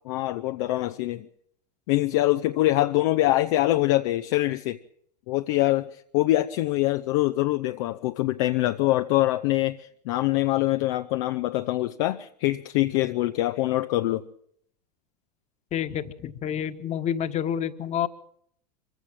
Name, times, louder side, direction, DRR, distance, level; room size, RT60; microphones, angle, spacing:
voice 1, 0.0-1.3 1.9-4.8 5.3-14.2, left 17 dB, 50° left, 0.8 m, -24 dB
voice 2, 15.7-18.1, left 9 dB, 35° left, 1.6 m, -28 dB
25.0 x 15.5 x 7.4 m
figure-of-eight pair, 80°, 21 cm